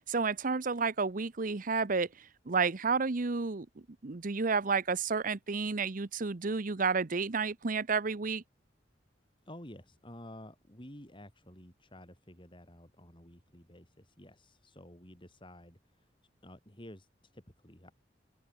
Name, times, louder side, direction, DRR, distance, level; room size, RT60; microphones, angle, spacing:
voice 1, 0.1-3.7 4.0-8.4, right 4 dB, 45° right, 0.8 m, -31 dB
voice 2, 9.4-16.1 16.4-17.9, left 1 dB, 25° left, 7.8 m, -52 dB
open air
head